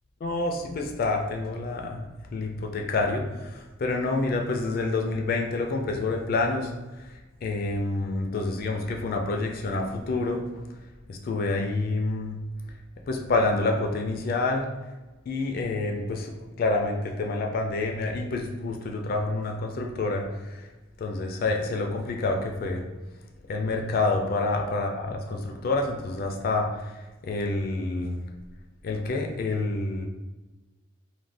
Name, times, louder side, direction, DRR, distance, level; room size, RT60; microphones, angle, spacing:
voice 1, 0.2-7.1 7.4-10.5 11.1-12.4 13.1-14.7 15.3-20.7 21.0-22.9 23.5-28.2 28.8-30.1, left 3 dB, 50° left, 2 dB, 0.3 m, -28 dB
2.5 x 2.1 x 3.3 m, 1.1 s
head